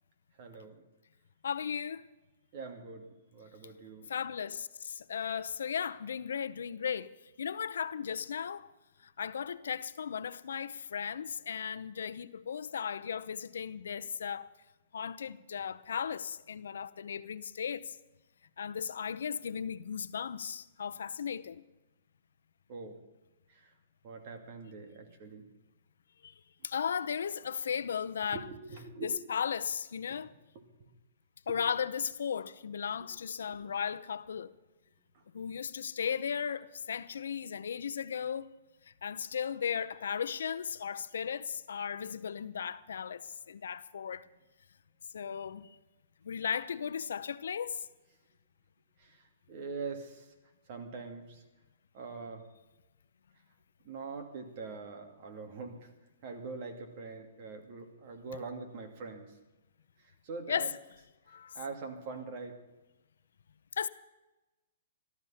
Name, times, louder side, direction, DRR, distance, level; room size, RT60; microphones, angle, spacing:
voice 1, 0.4-0.8 2.5-4.1 22.7-23.0 23.5-23.7 24.0-25.5 28.3-29.1 30.1-30.2 30.5-30.9 33.0-33.1 33.5-33.6 35.1-35.2 49.0-50.3 50.7-51.4 51.9-52.5 53.8-55.9 56.2-59.3 60.0-60.7 61.3-62.6, right 4 dB, 40° right, 2.5 m, -43 dB
voice 2, 1.4-2.0 4.1-8.7 9.2-14.5 14.9-17.9 18.6-21.6 26.2-26.3 26.6-28.4 29.0-30.3 31.5-34.5 35.3-38.5 39.0-44.3 45.1-45.8 46.2-47.8 60.5-60.7 61.3-61.6 63.8-63.9, left 7 dB, 85° left, 0.7 m, -36 dB
14.0 x 13.5 x 5.7 m
hypercardioid pair, 160°, 0 cm